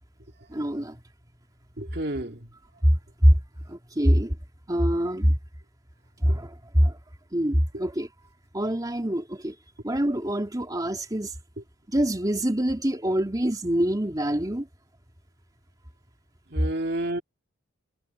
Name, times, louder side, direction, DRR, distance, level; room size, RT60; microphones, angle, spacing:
voice 1, 0.5-1.0 2.8-3.4 3.7-4.4 4.7-5.4 6.2-7.0 7.3-8.1 8.5-9.5 9.8-11.3 11.9-14.7, equal, 20° right, 2.8 m, -24 dB
voice 2, 1.8-2.4 16.5-17.2, right 1 dB, 50° right, 2.5 m, -30 dB
head